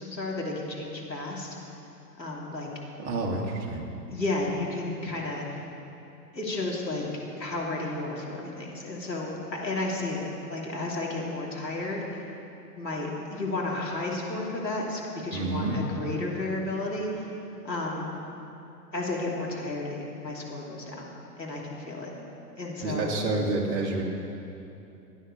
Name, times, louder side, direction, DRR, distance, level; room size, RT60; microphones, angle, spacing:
voice 1, 0.0-1.5 2.2-2.7 4.1-5.4 6.3-12.0 12.7-17.2 17.6-18.1 18.9-21.1 21.4-22.1 22.6-23.2, left 2 dB, 90° left, -3 dB, 3.1 m, -32 dB
voice 2, 3.0-3.8 15.3-15.8 22.8-24.0, right 2 dB, 35° right, -1 dB, 2.4 m, -28 dB
16.0 x 10.0 x 6.7 m, 2.8 s
figure-of-eight pair, 115°, 50 cm